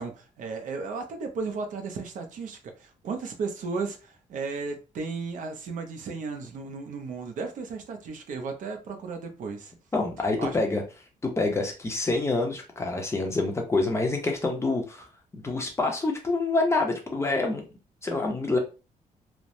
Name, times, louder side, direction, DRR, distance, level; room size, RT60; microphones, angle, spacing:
voice 1, 0.0-9.7 10.4-10.6, right 4 dB, 70° right, 0.6 m, -34 dB
voice 2, 9.9-10.8 11.2-15.1 15.3-17.6 18.0-18.6, left 3 dB, 20° left, 0.6 m, -26 dB
3.2 x 2.0 x 2.6 m
cardioid pair, 135°, 14 cm